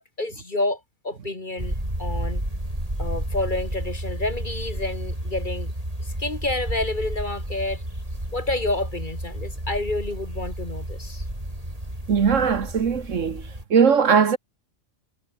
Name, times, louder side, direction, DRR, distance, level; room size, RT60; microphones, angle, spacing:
voice 1, 0.0-1.7 2.0-2.4 3.0-5.7 6.0-7.8 8.3-11.2, left 2 dB, 35° left, 2.8 m, -29 dB
sound 1, 1.6-13.6, right 1 dB, 25° right, 8.3 m, -31 dB
voice 2, 12.1-13.4 13.7-14.4, right 6 dB, 65° right, 1.6 m, -19 dB
omnidirectional pair, 1.4 m